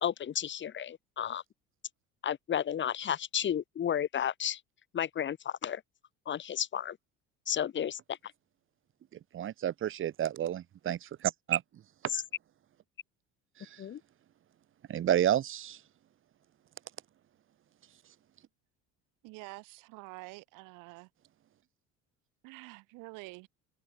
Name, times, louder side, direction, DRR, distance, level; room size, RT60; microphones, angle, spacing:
voice 1, 0.0-1.4 2.2-4.6 4.9-5.8 6.3-7.0 7.5-8.2 12.1-12.2 13.8-14.0, left 9 dB, 35° left, 1.2 m, -32 dB
voice 2, 9.3-11.6 14.9-15.8, right 11 dB, 40° right, 1.1 m, -30 dB
voice 3, 19.2-21.1 22.4-23.5, right 26 dB, 80° right, 4.6 m, -47 dB
supercardioid pair, 105°, 32 cm